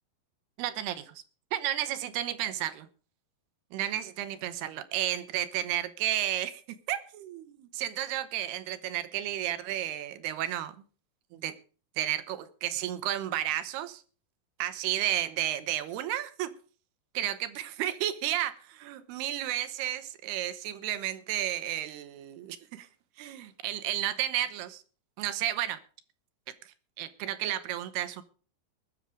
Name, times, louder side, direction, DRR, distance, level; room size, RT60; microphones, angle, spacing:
voice 1, 0.6-1.2 1.5-2.9 3.7-6.6 6.9-10.8 11.3-11.5 12.0-14.0 14.6-16.5 17.1-22.9 23.2-24.8 25.2-25.8 27.0-28.2, right 12 dB, 80° right, 13 dB, 3.0 m, -32 dB
21.0 x 7.2 x 4.9 m, 0.38 s
omnidirectional pair, 4.7 m